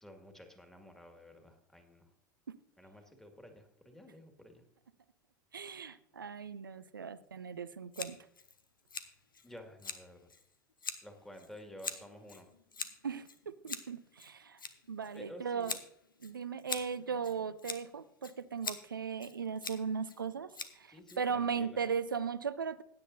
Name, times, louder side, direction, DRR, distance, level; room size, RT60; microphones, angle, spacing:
voice 1, 0.0-2.1 2.8-4.6 9.4-10.2 11.0-12.5 15.1-15.8 20.9-21.8, left 1 dB, 5° left, 4 dB, 2.1 m, -52 dB
voice 2, 5.5-8.2 13.0-14.6 14.9-15.8 16.2-22.8, right 6 dB, 85° right, 14 dB, 0.6 m, -37 dB
Scissors, 7.9-21.6, left 5 dB, 85° left, 0.9 m, -45 dB
16.0 x 9.9 x 2.7 m, 0.72 s
figure-of-eight pair, 80°, 11 cm